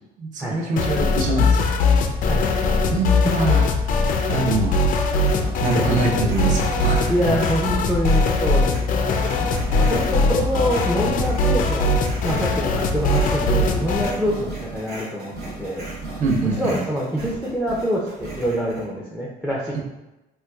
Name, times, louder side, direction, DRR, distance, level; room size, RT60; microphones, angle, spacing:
voice 1, 0.2-1.7 2.8-3.8 4.3-4.9 5.6-7.1 9.7-9.9 16.2-16.8, right 3 dB, 50° right, 1 dB, 0.7 m, -24 dB
sound 1, 0.8-14.2, left 3 dB, 55° left, 0.4 m, -21 dB
voice 2, 2.3-2.9 5.7-5.8 7.1-9.4 9.8-11.9 12.2-15.8 16.4-19.8, equal, 5° right, -4 dB, 0.5 m, -26 dB
sound 2, 5.2-18.8, right 2 dB, 70° right, 1.1 m, -35 dB
4.2 x 2.3 x 2.3 m, 0.99 s
cardioid pair, 110°, 17 cm